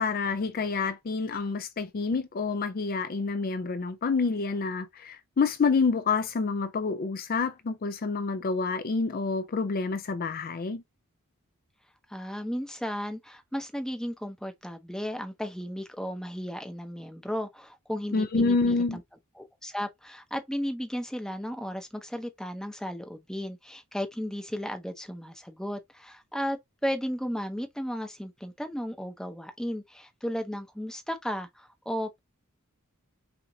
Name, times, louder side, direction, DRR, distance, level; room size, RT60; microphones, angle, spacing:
voice 1, 0.0-10.8 18.1-19.0, left 4 dB, 40° left, 0.4 m, -28 dB
voice 2, 12.1-19.0 19.4-32.2, equal, 5° left, 0.6 m, -34 dB
5.8 x 2.5 x 2.7 m
head